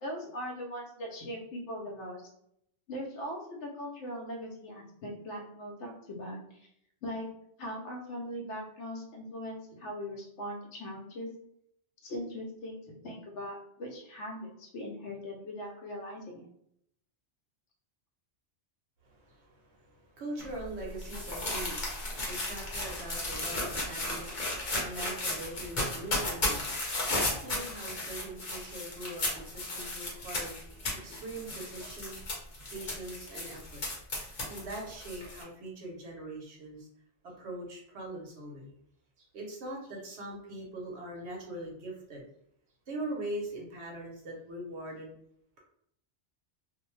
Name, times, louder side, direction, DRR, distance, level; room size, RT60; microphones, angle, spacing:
voice 1, 0.0-2.2 2.9-6.4 7.0-7.3 7.6-11.3 12.0-16.5, equal, 80° left, 0 dB, 1.0 m, -40 dB
voice 2, 19.0-32.2 32.7-33.8 34.5-36.9 37.2-38.7 39.2-42.2 42.9-45.1, right 1 dB, 70° right, -1 dB, 1.0 m, -42 dB
sound 1, 20.4-35.4, left 2 dB, 45° left, 0.8 m, -35 dB
2.6 x 2.1 x 3.0 m, 0.71 s
omnidirectional pair, 1.2 m